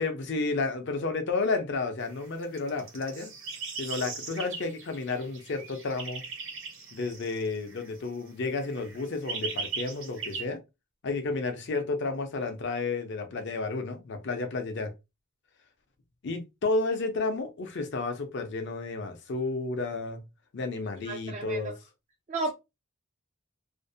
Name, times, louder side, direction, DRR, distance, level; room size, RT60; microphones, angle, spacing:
voice 1, 0.0-3.3 3.8-6.2 6.9-10.6 11.0-14.9 16.2-20.2 20.5-21.7, left 3 dB, 55° left, 0.5 m, -31 dB
sound 1, 2.1-8.2 8.5-10.4, right 4 dB, 75° right, 1.0 m, -39 dB
voice 2, 21.1-21.8 22.3-22.5, right 3 dB, 35° right, 0.3 m, -33 dB
2.5 x 2.1 x 2.6 m
head